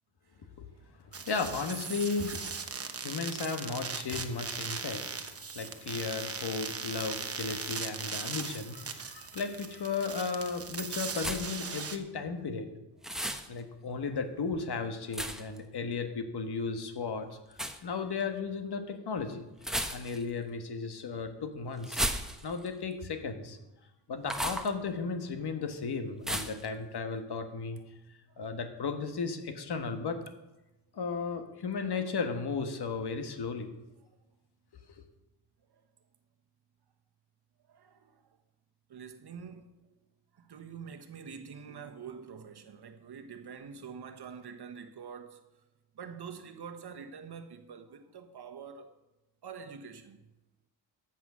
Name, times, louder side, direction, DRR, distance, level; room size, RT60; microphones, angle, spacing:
sound 1, 1.1-12.0, right 5 dB, 30° right, 1.1 m, -39 dB
voice 1, 1.3-2.6 2.9-12.7 13.5-19.4 19.9-22.0 22.4-23.6 24.1-27.8 28.4-30.2 30.9-33.7 35.0-35.1, left 4 dB, 55° left, 1.5 m, -35 dB
sound 2, 11.1-11.7 13.0-13.5 15.1-15.6 17.5-17.8 19.6-20.3 21.8-22.7 24.2-24.7 26.2-26.7, equal, ahead, 1.0 m, -34 dB
voice 2, 37.7-38.4 38.9-40.0 40.3-45.4 45.9-48.9 49.4-50.3, right 6 dB, 55° right, 1.3 m, -46 dB
14.5 x 6.1 x 6.2 m
cardioid pair, 95°, 46 cm